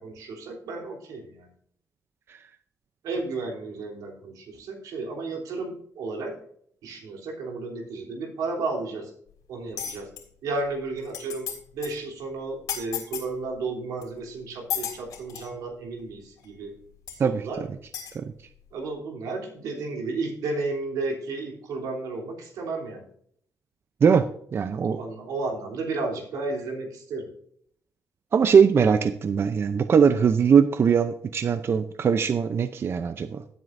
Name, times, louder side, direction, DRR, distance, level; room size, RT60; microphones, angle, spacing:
voice 1, 0.0-1.5 3.0-6.4 6.8-9.1 9.5-10.1 10.4-16.7 17.2-17.6 18.7-23.1 24.9-27.3, right 3 dB, 85° right, 0 dB, 3.4 m, -33 dB
sound 1, 9.8-10.2 10.8-10.9 11.0-11.6 11.8-12.0 12.7-13.3 14.0-14.1 14.7-15.5 16.4-16.5 17.1-17.2 17.9-18.1, left 9 dB, 85° left, 3.1 m, -33 dB
voice 2, 24.5-25.0 28.3-33.4, right 6 dB, 45° right, 10 dB, 0.6 m, -21 dB
17.0 x 7.8 x 2.6 m, 0.64 s
cardioid pair, 110°, 6 cm